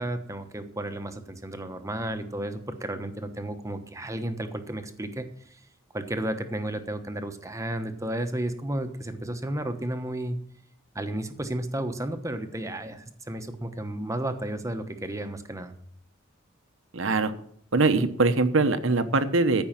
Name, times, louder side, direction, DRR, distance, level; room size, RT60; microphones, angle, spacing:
voice 1, 0.0-5.6 5.9-10.4 10.9-15.7, right 1 dB, 15° right, 8 dB, 1.0 m, -33 dB
voice 2, 16.9-17.3 17.7-19.6, right 3 dB, 75° right, 10 dB, 1.0 m, -22 dB
14.0 x 5.5 x 7.4 m, 0.65 s
head